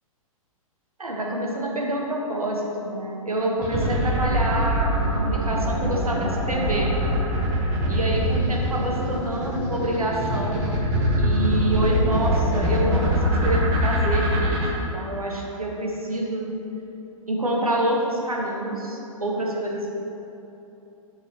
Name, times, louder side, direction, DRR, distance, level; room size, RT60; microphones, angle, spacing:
voice 1, 1.0-7.0 7.9-10.8 11.2-16.6 17.3-19.9, right 1 dB, 85° right, -1 dB, 1.2 m, -27 dB
sound 1, 3.6-14.7, right 1 dB, 35° right, 1.4 m, -23 dB
9.9 x 4.7 x 3.0 m, 2.9 s
figure-of-eight pair, 110°, 18 cm